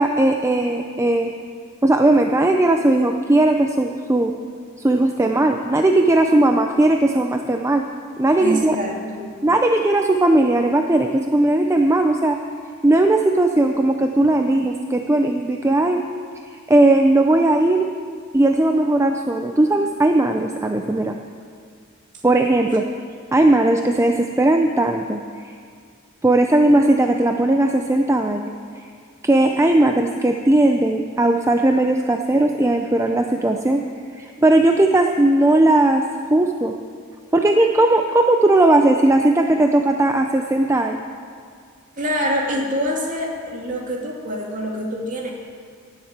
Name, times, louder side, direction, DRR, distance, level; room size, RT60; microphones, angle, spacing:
voice 1, 0.0-1.3 1.8-4.3 4.8-7.8 8.2-8.8 9.4-12.4 12.8-16.0 16.5-17.9 18.3-21.2 22.2-22.9 23.3-25.2 26.2-28.5 29.2-33.8 34.2-36.0 36.3-36.8 37.3-41.0, right 2 dB, 15° right, 4 dB, 0.5 m, -17 dB
voice 2, 8.4-9.3 22.9-23.0 42.0-45.3, equal, 35° right, -1 dB, 2.4 m, -25 dB
18.0 x 7.4 x 8.1 m, 2.1 s
head